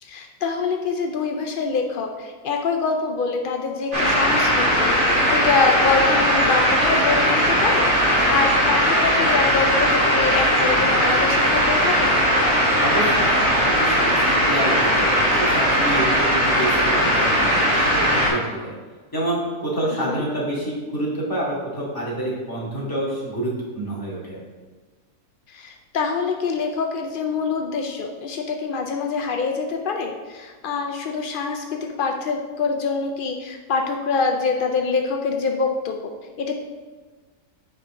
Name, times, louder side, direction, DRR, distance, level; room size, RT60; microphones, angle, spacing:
voice 1, 0.0-7.9 8.3-12.1 20.1-20.2 25.5-36.1 36.4-36.5, left 4 dB, 75° left, 3 dB, 0.4 m, -25 dB
sound 1, 3.9-18.3, equal, 50° right, 2.7 m, -19 dB
voice 2, 12.8-18.7 19.1-24.4, right 1 dB, 15° left, -8 dB, 2.2 m, -28 dB
8.0 x 5.1 x 3.7 m, 1.4 s
omnidirectional pair, 1.6 m